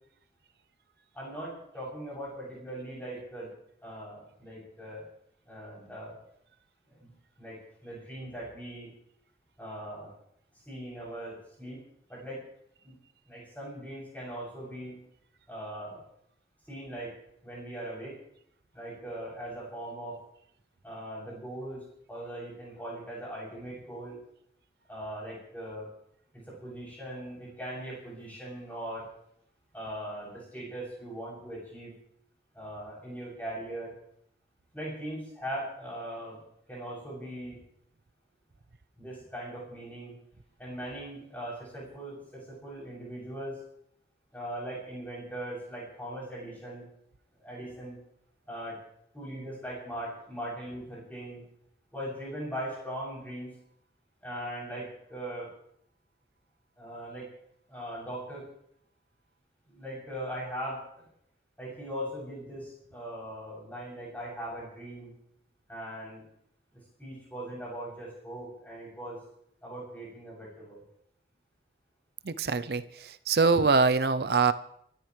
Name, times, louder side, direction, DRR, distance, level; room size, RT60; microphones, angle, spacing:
voice 1, 1.1-3.5 3.8-5.0 5.5-6.2 6.9-7.1 7.4-8.9 9.6-10.1 10.7-11.8 12.1-12.4 12.8-13.0 13.3-15.0 15.5-16.0 16.7-18.1 18.7-20.2 20.8-24.2 24.9-25.9 26.3-29.1 29.7-31.9 32.5-33.9 34.7-36.4 36.7-37.6 39.0-40.1 40.6-43.6 44.3-46.9 47.4-48.0 48.5-48.8 49.1-51.4 51.9-53.6 54.2-55.5 56.8-57.3 57.7-58.4 59.7-61.1 61.6-65.1 65.7-66.2 67.0-69.2 69.6-70.8, right 1 dB, 10° left, -6 dB, 7.5 m, -40 dB
voice 2, 72.2-74.5, right 4 dB, 65° right, 13 dB, 0.6 m, -24 dB
27.5 x 13.5 x 3.3 m, 0.72 s
head